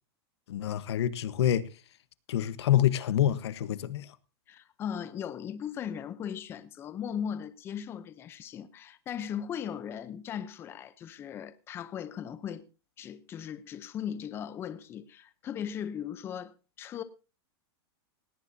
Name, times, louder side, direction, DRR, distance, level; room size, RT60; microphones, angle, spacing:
voice 1, 0.5-1.7 2.3-4.1, left 11 dB, 80° left, 1.2 m, -27 dB
voice 2, 4.5-12.6 13.0-17.0, left 8 dB, 15° left, 0.7 m, -38 dB
18.0 x 17.0 x 2.7 m
supercardioid pair, 170°, 14 cm